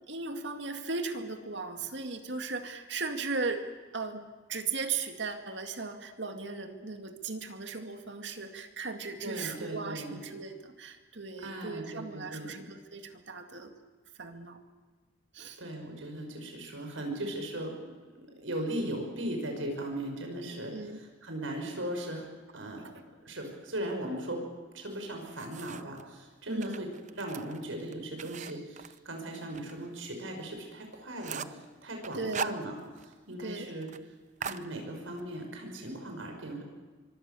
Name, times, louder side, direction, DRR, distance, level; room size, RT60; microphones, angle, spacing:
voice 1, 0.1-3.6 3.9-13.7 14.2-14.6 15.3-15.6 20.7-21.0 26.5-26.8 32.1-32.5 33.4-33.7, right 4 dB, 65° right, 6 dB, 2.2 m, -37 dB
voice 2, 9.2-10.2 11.4-12.6 15.6-17.7 18.2-22.2 22.5-22.9 23.2-24.4 24.7-26.9 27.2-32.8 33.0-33.9 34.4-36.6, right 1 dB, 80° right, 3 dB, 6.0 m, -38 dB
sound 1, 24.9-26.0 26.5-29.7 30.1-30.2 30.6-30.7 30.9-31.6 32.0-33.1 33.4-33.5 33.8-34.0 34.4-35.3, right 6 dB, 35° right, 0.6 m, -40 dB
24.5 x 24.5 x 7.0 m, 1.4 s
head